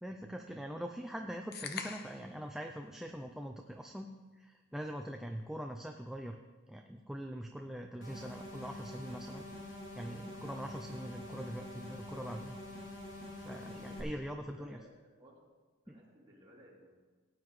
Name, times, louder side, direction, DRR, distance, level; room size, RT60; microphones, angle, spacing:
voice 1, 0.0-4.1 4.3-6.4 6.7-9.4 9.9-12.6 13.4-14.8 15.9-16.0, equal, ahead, 3 dB, 0.4 m, -43 dB
sound 1, 1.5-2.3, left 6 dB, 45° left, 0.8 m, -42 dB
sound 2, 8.0-14.0, left 1 dB, 65° left, 2.8 m, -46 dB
voice 2, 13.7-15.5 15.8-17.0, equal, 20° right, -6 dB, 3.0 m, -59 dB
17.5 x 9.3 x 3.2 m, 1.3 s
head